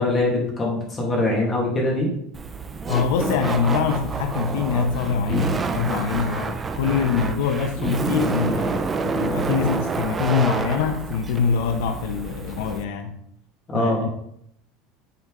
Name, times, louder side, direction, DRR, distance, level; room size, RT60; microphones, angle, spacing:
voice 1, 0.0-2.1 13.7-14.0, left 2 dB, 15° left, 2.0 m, -22 dB
Laughter, 2.3-12.8, right 4 dB, 15° right, 0.4 m, -28 dB
voice 2, 2.9-13.2 13.7-14.1, left 6 dB, 75° left, 0.7 m, -24 dB
9.2 x 4.2 x 3.8 m
cardioid pair, 180°, 0 cm